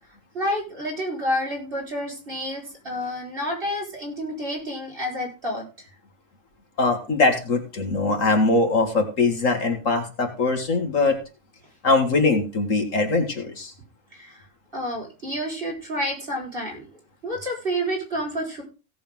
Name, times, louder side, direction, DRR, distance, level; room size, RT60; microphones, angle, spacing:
voice 1, 0.3-5.6 14.1-14.4 14.7-16.9 17.2-18.6, equal, 45° right, -2 dB, 5.2 m, -29 dB
voice 2, 6.8-11.2 11.8-13.7, left 3 dB, 75° left, 4 dB, 2.5 m, -22 dB
17.0 x 7.1 x 3.7 m, 0.32 s
omnidirectional pair, 1.3 m